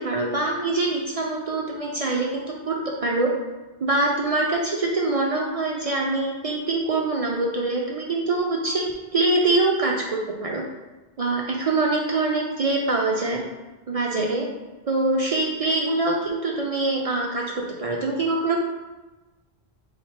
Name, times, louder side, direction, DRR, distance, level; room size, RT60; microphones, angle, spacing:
voice 1, 0.0-2.8 3.0-3.3 3.8-10.6 11.2-13.4 13.9-14.5 14.9-17.4 17.8-18.6, right 2 dB, 50° right, -2 dB, 0.4 m, -24 dB
3.3 x 3.2 x 4.2 m, 1.1 s
omnidirectional pair, 1.1 m